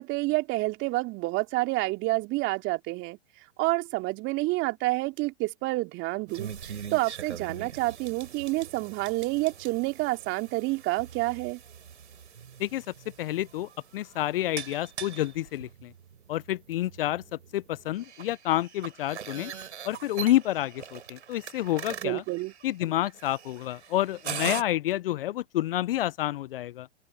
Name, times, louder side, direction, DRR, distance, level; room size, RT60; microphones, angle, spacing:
voice 1, 0.0-3.2 3.6-11.6 22.0-22.5, right 22 dB, 35° right, 3.0 m, -29 dB
sound 1, 6.3-24.6, right 8 dB, 75° right, 5.8 m, -42 dB
voice 2, 13.2-15.9 16.3-17.2 17.5-19.5 19.8-22.2 22.6-26.9, left 14 dB, 50° left, 0.7 m, -29 dB
open air
hypercardioid pair, 120°, 36 cm